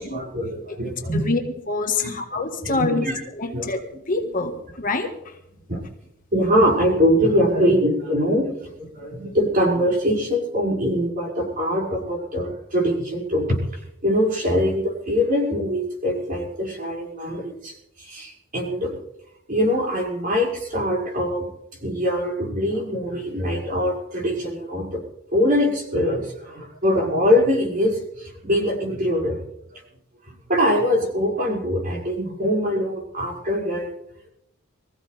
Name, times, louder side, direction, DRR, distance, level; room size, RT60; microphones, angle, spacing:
voice 1, 0.0-1.2 2.0-3.1 3.5-3.7 4.2-4.3 5.7-5.8 6.3-8.5 8.8-13.6 14.0-19.0 19.5-21.5 21.8-25.0 25.3-29.4 30.3-33.9, equal, 40° right, -3 dB, 5.9 m, -23 dB
voice 2, 1.7-3.1 3.4-3.8 4.1-5.1, left 3 dB, 40° left, 4 dB, 1.6 m, -25 dB
24.0 x 15.5 x 3.4 m, 0.80 s
head